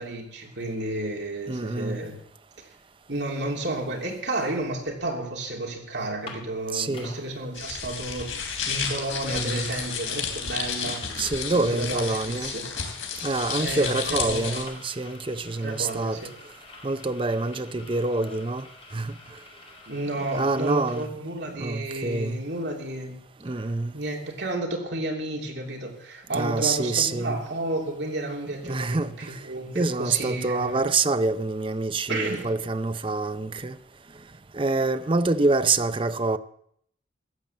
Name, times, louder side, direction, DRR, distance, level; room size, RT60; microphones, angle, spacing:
voice 1, 0.0-2.1 3.1-11.0 11.5-12.7 13.6-14.6 15.6-16.3 19.9-23.2 23.6-23.7 23.9-29.1 29.4-30.8 32.1-32.5, right 2 dB, 60° right, 3.0 m, -32 dB
voice 2, 1.5-2.0 6.7-7.2 9.3-9.7 11.2-12.5 13.2-16.2 16.8-18.7 18.9-19.1 20.3-21.1 21.4-22.4 23.4-23.9 26.3-27.4 28.6-29.4 29.7-33.8 34.5-36.4, right 3 dB, 25° right, 0.6 m, -26 dB
sound 1, 3.6-3.7 4.1-5.3 5.6-5.7 6.0-7.2 7.8-7.9 8.2-21.0, left 3 dB, 30° left, 2.3 m, -48 dB
sound 2, 7.5-14.6, left 6 dB, 90° left, 3.2 m, -32 dB
sound 3, 8.1-12.8, left 3 dB, 70° left, 4.3 m, -44 dB
14.5 x 8.8 x 7.3 m
head